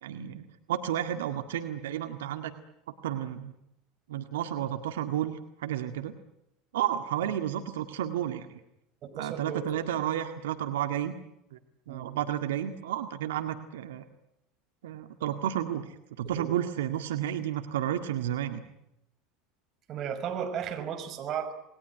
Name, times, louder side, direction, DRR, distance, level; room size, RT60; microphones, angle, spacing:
voice 1, 0.0-2.5 3.0-3.5 4.1-6.1 6.7-8.6 9.1-11.1 11.5-11.6 11.9-14.0 14.8-15.9 16.2-18.6, right 11 dB, 70° right, 7 dB, 1.8 m, -32 dB
voice 2, 9.0-9.6 11.9-12.1 16.2-16.5 19.9-21.5, right 8 dB, 45° right, 6 dB, 5.8 m, -35 dB
28.5 x 20.5 x 9.3 m, 0.85 s
hypercardioid pair, 75°, 0 cm